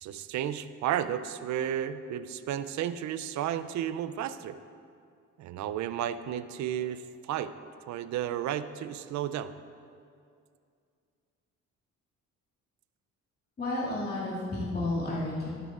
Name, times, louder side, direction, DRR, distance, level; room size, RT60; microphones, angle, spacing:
voice 1, 0.0-4.6 5.4-7.5 7.9-9.5, right 10 dB, 70° right, 13 dB, 0.5 m, -33 dB
voice 2, 13.6-15.5, left 2 dB, 35° left, -8 dB, 2.3 m, -31 dB
12.0 x 9.0 x 2.5 m, 2.3 s
cardioid pair, 90°, 30 cm